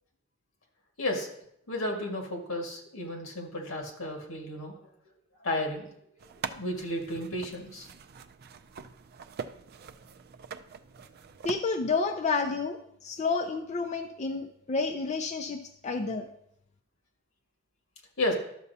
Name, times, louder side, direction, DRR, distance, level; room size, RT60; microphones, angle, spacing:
voice 1, 1.0-1.4 1.7-4.9 5.4-5.9 6.5-7.9 18.2-18.3, left 1 dB, 85° left, 1 dB, 1.8 m, -33 dB
sound 1, 6.2-11.5, right 6 dB, 50° right, 0.4 m, -43 dB
voice 2, 11.4-16.3, left 4 dB, 35° left, 5 dB, 0.5 m, -30 dB
12.0 x 6.9 x 2.7 m, 0.74 s
head